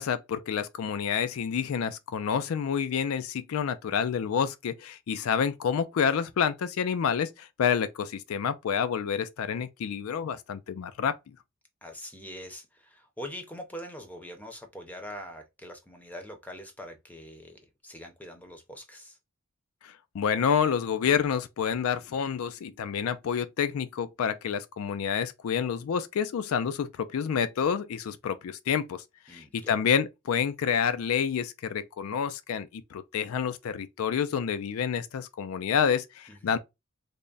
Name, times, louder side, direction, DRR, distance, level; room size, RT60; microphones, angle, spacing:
voice 1, 0.0-11.1 19.8-36.6, left 7 dB, 85° left, 0.4 m, -28 dB
voice 2, 11.8-19.2 29.3-29.8 36.3-36.6, equal, 5° left, 0.6 m, -43 dB
3.4 x 2.1 x 3.8 m
head